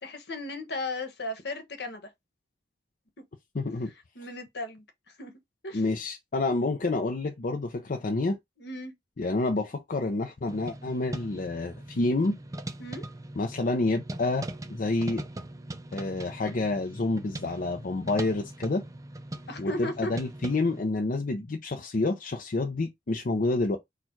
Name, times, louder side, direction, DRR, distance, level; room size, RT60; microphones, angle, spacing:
voice 1, 0.0-2.1 4.1-4.8 5.2-5.3 5.6-5.8 8.6-8.9 12.8-13.0 19.5-20.1, left 2 dB, 65° left, 1.2 m, -35 dB
voice 2, 3.5-3.9 5.7-8.4 9.2-12.4 13.4-15.2 15.9-18.8 19.6-23.8, left 2 dB, 50° left, 0.6 m, -28 dB
sound 1, 10.5-20.9, right 1 dB, 20° right, 0.4 m, -41 dB
4.4 x 2.4 x 4.5 m
head